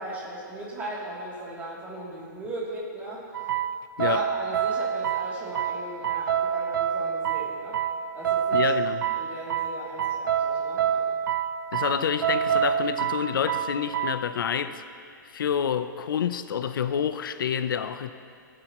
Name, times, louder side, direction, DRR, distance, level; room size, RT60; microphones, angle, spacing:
voice 1, 0.0-3.3 4.0-7.8 8.1-8.7 9.1-11.2, right 1 dB, 15° right, 3.0 m, -37 dB
sound 1, 3.3-14.2, right 8 dB, 70° right, 0.6 m, -27 dB
voice 2, 8.5-9.0 11.7-14.8 15.3-18.1, left 8 dB, 75° left, 0.7 m, -28 dB
29.0 x 9.8 x 3.1 m
hypercardioid pair, 160°, 11 cm